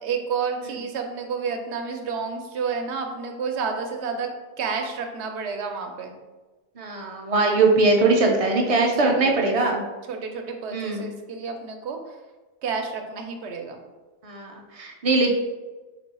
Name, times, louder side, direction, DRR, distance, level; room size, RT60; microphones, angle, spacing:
voice 1, 0.0-4.3 4.6-6.1 8.6-9.3 10.1-12.1 12.6-13.8, right 5 dB, 80° right, 4 dB, 0.9 m, -30 dB
voice 2, 6.8-9.9 10.7-11.1 14.2-15.3, right 3 dB, 45° right, 2 dB, 0.4 m, -21 dB
4.3 x 2.3 x 4.1 m, 1.2 s
omnidirectional pair, 1.1 m